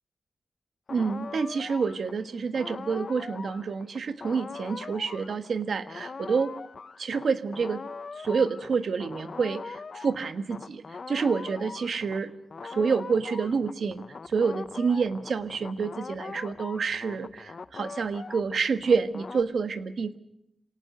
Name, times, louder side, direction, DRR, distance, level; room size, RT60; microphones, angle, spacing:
sound 1, 0.9-12.2 12.5-19.4, left 4 dB, 55° left, 0.9 m, -41 dB
voice 1, 0.9-6.5 7.0-7.8 8.2-12.3 12.6-20.2, right 5 dB, 70° right, 10 dB, 1.5 m, -28 dB
27.5 x 18.0 x 6.7 m, 0.78 s
wide cardioid pair, 85°, 0 cm